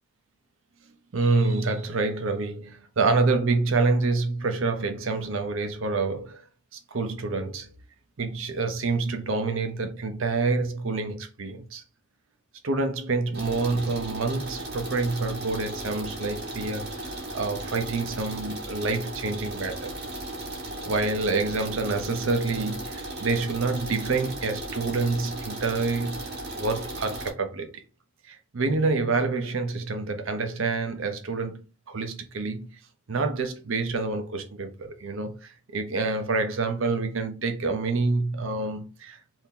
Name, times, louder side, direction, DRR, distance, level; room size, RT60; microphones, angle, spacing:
voice 1, 1.1-6.4 6.9-7.7 8.2-11.8 12.6-16.8 17.3-19.9 20.9-26.3 26.5-27.7 28.3-31.6 31.9-32.7 33.1-39.2, right 3 dB, 70° right, 0.6 m, -27 dB
sound 1, 13.3-27.3, right 1 dB, 50° right, 1.0 m, -36 dB
2.8 x 2.7 x 3.6 m
head